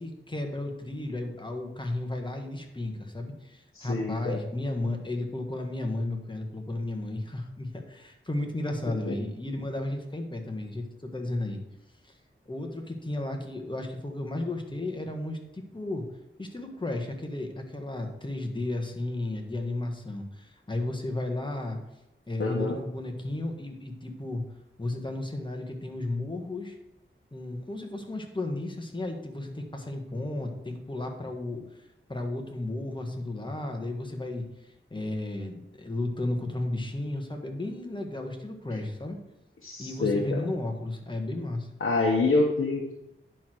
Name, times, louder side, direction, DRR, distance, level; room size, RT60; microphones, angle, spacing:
voice 1, 0.0-11.6 12.0-12.1 12.4-16.0 16.4-21.8 22.3-24.4 24.8-26.8 27.3-31.6 32.1-39.2 39.8-41.7, left 2 dB, 20° left, 3 dB, 1.5 m, -33 dB
voice 2, 3.7-4.4 9.1-9.2 22.4-22.8 39.6-40.4 41.8-42.9, left 3 dB, 70° left, -2 dB, 1.2 m, -26 dB
10.0 x 4.6 x 6.3 m, 0.88 s
wide cardioid pair, 85°, 21 cm